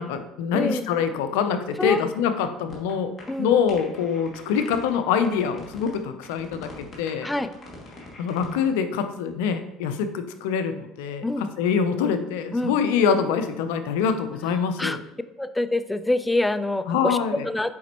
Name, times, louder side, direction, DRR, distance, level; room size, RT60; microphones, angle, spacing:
voice 1, 0.0-3.1 3.4-7.3 8.2-15.0 16.9-17.5, left 7 dB, 80° left, 9 dB, 0.6 m, -25 dB
sound 1, 2.7-2.9 3.2-3.3 3.7-5.0 5.2-6.0 6.2-8.7, left 2 dB, 40° left, 2.2 m, -43 dB
voice 2, 15.4-17.7, left 2 dB, 10° left, 11 dB, 0.4 m, -25 dB
7.3 x 5.1 x 3.0 m, 0.93 s
supercardioid pair, 80°, 0 cm